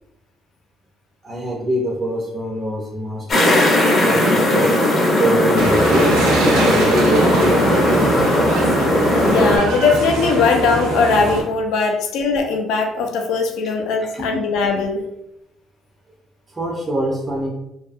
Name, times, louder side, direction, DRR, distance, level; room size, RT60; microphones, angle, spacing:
voice 1, 1.2-3.8 4.0-4.7 5.2-6.2 6.6-8.3 14.1-14.3 16.5-17.5, right 1 dB, 15° right, -2 dB, 0.3 m, -24 dB
sound 1, 3.3-9.6, left 1 dB, 30° left, 0.6 m, -17 dB
sound 2, 5.6-11.4, right 3 dB, 90° right, 0.5 m, -23 dB
voice 2, 9.2-15.0, left 4 dB, 75° left, 3 dB, 0.4 m, -19 dB
2.6 x 2.3 x 2.4 m, 0.83 s
cardioid pair, 170°, 0 cm